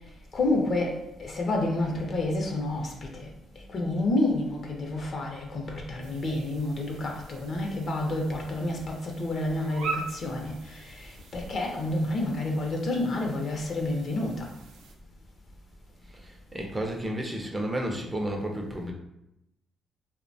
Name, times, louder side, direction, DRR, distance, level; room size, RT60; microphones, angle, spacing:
voice 1, 0.3-3.3 3.7-14.5, left 2 dB, 50° left, 1 dB, 0.6 m, -29 dB
sound 1, 6.0-15.0, right 4 dB, 90° right, 0.4 m, -43 dB
voice 2, 16.2-18.9, right 1 dB, 20° right, 1 dB, 0.4 m, -32 dB
2.7 x 2.1 x 2.6 m, 0.86 s
cardioid pair, 90°, 0 cm